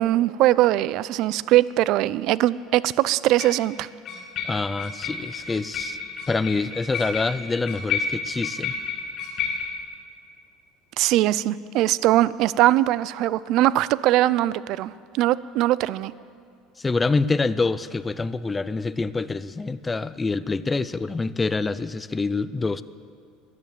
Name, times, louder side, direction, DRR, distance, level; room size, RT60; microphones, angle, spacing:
voice 1, 0.0-3.9 11.0-16.1, right 15 dB, 55° right, 19 dB, 0.4 m, -21 dB
sound 1, 1.2-1.3 3.4-3.6 4.1-9.8, left 5 dB, 40° left, 2.1 m, -31 dB
voice 2, 4.4-6.0 6.3-8.7 11.0-11.1 16.8-22.8, left 3 dB, 15° left, 15 dB, 0.4 m, -26 dB
15.5 x 11.0 x 7.4 m, 2.3 s
cardioid pair, 140°, 0 cm